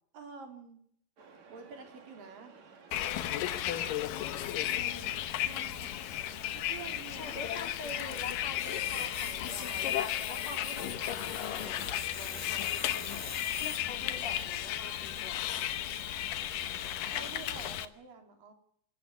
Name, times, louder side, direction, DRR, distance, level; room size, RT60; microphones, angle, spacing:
voice 1, 0.1-0.8 1.5-2.6 5.5-6.1 6.5-7.4 17.0-18.5, right 5 dB, 75° right, 4 dB, 5.3 m, -48 dB
sound 1, 1.2-17.8, right 5 dB, 55° right, 4.0 m, -54 dB
Bus, 2.9-17.9, left 12 dB, 80° left, 2.7 m, -34 dB
voice 2, 4.1-5.1 7.2-13.3 13.8-15.8, left 2 dB, 50° left, 4 dB, 4.4 m, -46 dB
sound 2, 7.8-13.8, left 4 dB, 25° left, 1.4 m, -44 dB
26.0 x 13.5 x 9.2 m, 0.66 s
omnidirectional pair, 3.9 m